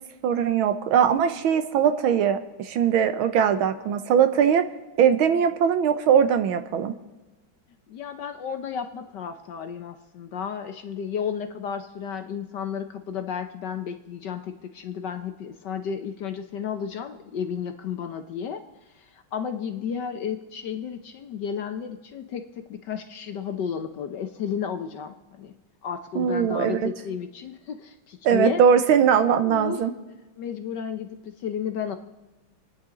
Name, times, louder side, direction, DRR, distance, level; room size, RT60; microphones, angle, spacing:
voice 1, 0.2-4.7 5.0-7.0 26.2-26.9 28.2-29.9, right 8 dB, 80° right, 9 dB, 1.7 m, -21 dB
voice 2, 7.9-18.6 18.9-25.5 25.8-28.6 29.4-29.8 30.4-32.0, left 7 dB, 65° left, 7 dB, 1.4 m, -32 dB
28.0 x 9.7 x 3.8 m, 1.2 s
omnidirectional pair, 2.2 m